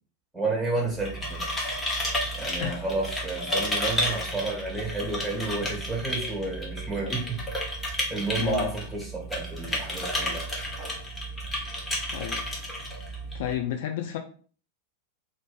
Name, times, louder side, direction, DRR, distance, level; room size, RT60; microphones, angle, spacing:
voice 1, 0.3-1.6 2.3-7.4 8.1-10.4, right 3 dB, ahead, -2 dB, 1.3 m, -31 dB
sound 1, 0.9-13.6, equal, 15° left, 0.9 m, -32 dB
voice 2, 8.4-8.7 11.7-12.4 12.9-13.0 13.3-14.2, left 10 dB, 55° left, 4 dB, 0.4 m, -32 dB
2.5 x 2.5 x 3.6 m, 0.41 s
figure-of-eight pair, 90°, 0 cm